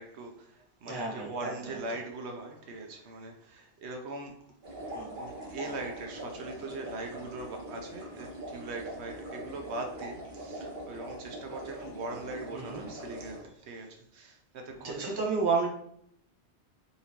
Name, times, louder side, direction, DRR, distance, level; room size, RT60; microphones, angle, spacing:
voice 1, 0.0-4.3 5.2-15.2, right 2 dB, 80° right, 3 dB, 1.0 m, -41 dB
voice 2, 0.8-1.5 4.9-5.1 12.5-12.8 14.8-15.7, right 4 dB, 25° right, -1 dB, 0.9 m, -30 dB
sound 1, 4.6-13.4, right 1 dB, 50° right, 1.5 m, -42 dB
4.2 x 3.8 x 2.9 m, 0.70 s
omnidirectional pair, 1.1 m